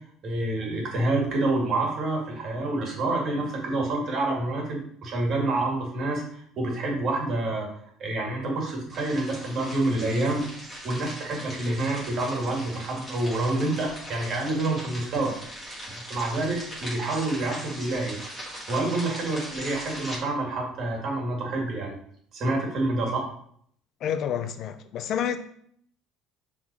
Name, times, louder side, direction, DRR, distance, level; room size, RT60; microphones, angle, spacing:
voice 1, 0.0-7.7 8.0-15.3 15.9-18.2 18.7-22.0 22.3-23.3, right 2 dB, 45° right, 2.3 m, -28 dB
sound 1, 8.9-20.2, equal, 15° left, 2.6 m, -40 dB
voice 2, 24.0-25.4, left 9 dB, 50° left, 0.5 m, -29 dB
5.9 x 3.8 x 4.8 m
cardioid pair, 125°, 0 cm